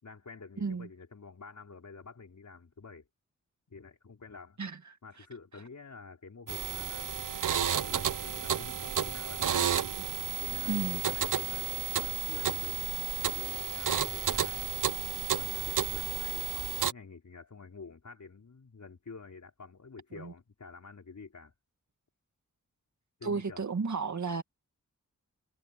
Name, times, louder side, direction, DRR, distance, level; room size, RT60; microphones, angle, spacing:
voice 1, 0.0-3.1 3.7-4.6 5.0-7.4 7.8-12.9 13.3-14.7 15.4-21.5 23.2-23.6, left 4 dB, 70° left, 4.7 m, -49 dB
voice 2, 4.6-5.0 10.7-11.0 20.1-20.3 23.2-24.4, right 4 dB, 65° right, 1.9 m, -33 dB
sound 1, 6.5-16.9, right 8 dB, 85° right, 0.8 m, -32 dB
wide cardioid pair, 75°, 31 cm